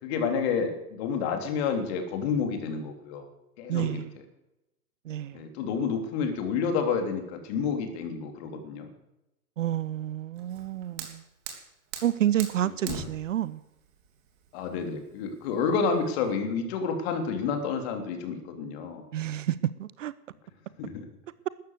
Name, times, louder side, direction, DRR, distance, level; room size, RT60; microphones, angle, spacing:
voice 1, 0.0-3.3 3.6-4.0 5.3-8.9 12.6-13.0 14.5-19.0 20.8-21.1, left 5 dB, 40° left, 5 dB, 3.4 m, -29 dB
voice 2, 3.7-4.1 5.1-5.4 9.6-11.2 12.0-13.6 19.1-20.1, right 12 dB, 50° right, 17 dB, 0.7 m, -29 dB
Fire, 10.4-16.3, right 6 dB, 35° right, 3.1 m, -43 dB
13.5 x 11.5 x 8.1 m, 0.91 s
hypercardioid pair, 125°, 48 cm